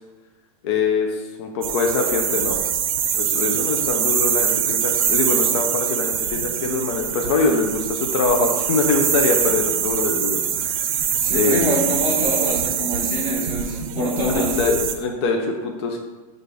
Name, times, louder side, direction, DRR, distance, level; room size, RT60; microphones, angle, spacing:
voice 1, 0.6-2.6 3.1-11.8 14.3-16.0, left 4 dB, 45° left, 2 dB, 0.5 m, -23 dB
sound 1, 1.6-14.9, right 8 dB, 65° right, 0.6 m, -23 dB
voice 2, 11.2-14.6, equal, 15° left, -7 dB, 1.3 m, -25 dB
6.3 x 2.5 x 3.3 m, 1.2 s
supercardioid pair, 170°, 19 cm